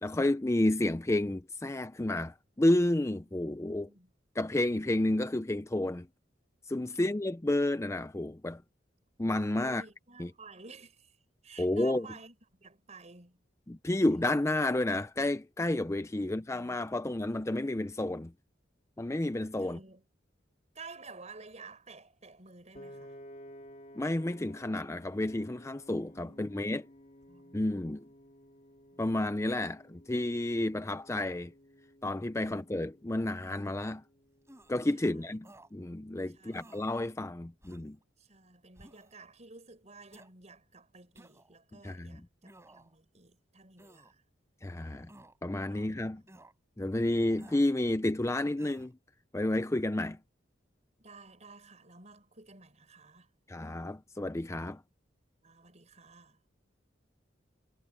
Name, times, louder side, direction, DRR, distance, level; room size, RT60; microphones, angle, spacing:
voice 1, 0.0-3.9 4.4-6.1 6.7-8.6 9.2-9.8 10.2-10.3 11.6-12.1 13.7-18.3 19.0-19.8 24.0-26.9 27.5-28.0 29.0-31.5 32.0-34.0 34.7-38.0 41.8-42.2 44.6-45.1 45.4-46.2 46.8-48.9 49.3-50.2 53.5-54.8, left 1 dB, 15° left, 0.5 m, -31 dB
voice 2, 3.7-4.1 7.0-7.1 9.6-11.2 11.4-12.3 12.6-13.4 19.6-20.0 20.8-23.2 26.1-26.7 27.3-27.8 28.9-29.0 35.0-35.3 36.3-36.8 38.2-44.2 44.8-45.1 45.7-46.1 46.4-46.5 51.0-53.3 55.4-56.4, right 4 dB, 40° right, 5.2 m, -53 dB
Piano, 22.7-35.0, equal, 40° left, 2.5 m, -55 dB
sound 1, 33.4-33.9 34.5-34.7 35.4-35.7 36.5-37.0 37.6-38.0 38.7-39.2 40.1-40.3 41.2-41.6 42.4-42.9 43.8-44.1 45.1-45.4 46.3-46.5 47.4-47.7 48.6-48.9, right 1 dB, 15° right, 4.4 m, -55 dB
head